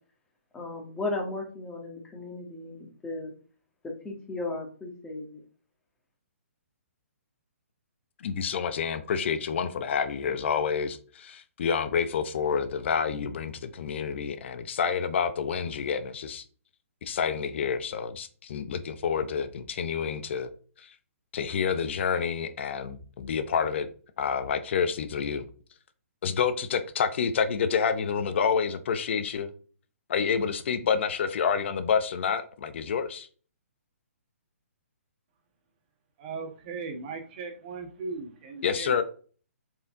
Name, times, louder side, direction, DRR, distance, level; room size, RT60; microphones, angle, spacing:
voice 1, 0.5-3.3 4.0-5.4, left 2 dB, 10° left, 1.7 m, -35 dB
voice 2, 8.2-16.4 17.0-20.5 20.8-21.0 21.3-23.9 24.2-25.5 26.2-29.5 30.1-33.3 38.6-39.0, left 6 dB, 50° left, 0.8 m, -28 dB
voice 3, 36.2-39.0, right 4 dB, 35° right, 1.5 m, -38 dB
7.7 x 4.6 x 3.8 m
hypercardioid pair, 150°, 8 cm